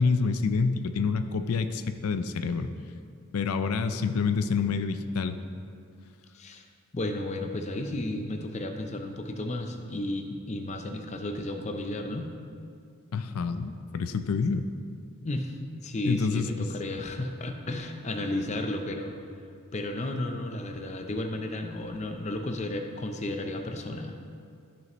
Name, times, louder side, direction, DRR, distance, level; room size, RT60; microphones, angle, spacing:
voice 1, 0.0-2.7 3.3-5.4 13.1-14.7 16.0-16.7, left 4 dB, 85° left, 9 dB, 0.4 m, -27 dB
voice 2, 6.9-12.3 15.2-15.5 15.8-19.2 19.7-24.2, left 1 dB, 30° left, 5 dB, 0.5 m, -33 dB
13.0 x 6.3 x 3.0 m, 2.3 s
head